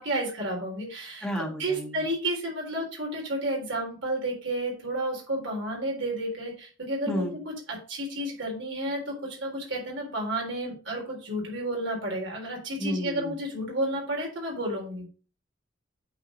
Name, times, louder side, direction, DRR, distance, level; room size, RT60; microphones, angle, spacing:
voice 1, 0.0-1.3 1.6-7.2 7.9-15.1, right 1 dB, 70° right, -1 dB, 3.9 m, -31 dB
voice 2, 1.2-2.0 7.1-7.3 12.8-13.4, equal, 5° left, 0 dB, 1.7 m, -31 dB
8.7 x 4.3 x 5.2 m, 0.37 s
head